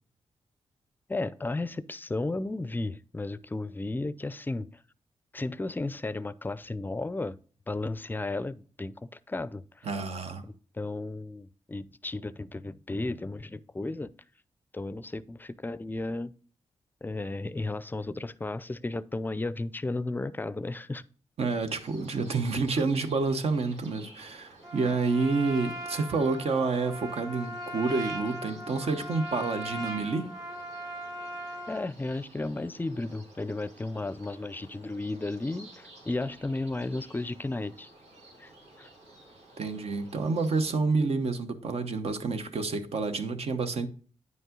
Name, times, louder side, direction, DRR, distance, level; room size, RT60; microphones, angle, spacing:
voice 1, 1.1-4.7 5.3-7.4 7.7-8.9 9.3-9.9 10.4-14.1 14.7-16.3 17.0-21.0 31.7-37.9 38.4-38.5 38.8-38.9, left 2 dB, 15° left, 0.4 m, -34 dB
voice 2, 9.8-10.4 21.4-30.3 39.6-43.9, right 4 dB, 70° right, 1.0 m, -29 dB
sound 1, 21.7-40.7, right 1 dB, 90° right, 2.9 m, -54 dB
Trumpet, 24.6-31.9, right 1 dB, 35° right, 1.9 m, -39 dB
9.4 x 5.4 x 3.8 m
cardioid pair, 80°, 11 cm